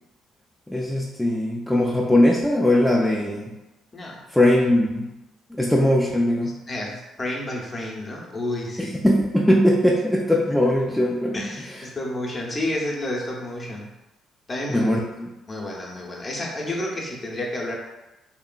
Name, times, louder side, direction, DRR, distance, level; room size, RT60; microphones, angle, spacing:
voice 1, 0.7-3.5 4.3-5.1 5.5-6.6 8.8-11.4 11.8-11.9 14.7-15.3, left 1 dB, 5° left, -3 dB, 0.3 m, -20 dB
voice 2, 3.9-4.2 6.7-8.9 10.6-10.7 11.3-13.9 14.5-15.0 15.5-17.7, left 1 dB, 30° left, -2 dB, 0.7 m, -30 dB
2.8 x 2.4 x 2.2 m, 1.0 s
supercardioid pair, 70°, 0 cm